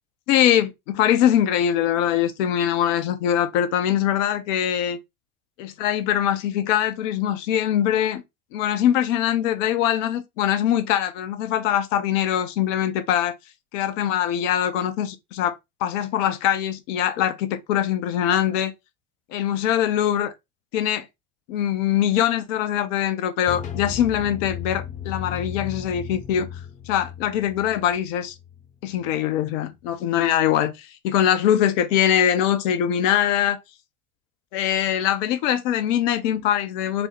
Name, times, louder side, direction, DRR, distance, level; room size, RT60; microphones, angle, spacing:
voice 1, 0.3-5.0 5.6-8.2 8.5-13.4 13.7-18.7 19.3-20.3 20.7-21.1 21.5-26.5 26.9-28.3 28.8-33.6 34.5-37.1, left 10 dB, 60° left, 0.7 m, -22 dB
sound 1, 23.5-29.2, left 9 dB, 20° left, 0.3 m, -35 dB
4.2 x 2.0 x 2.8 m
figure-of-eight pair, 75°, 44 cm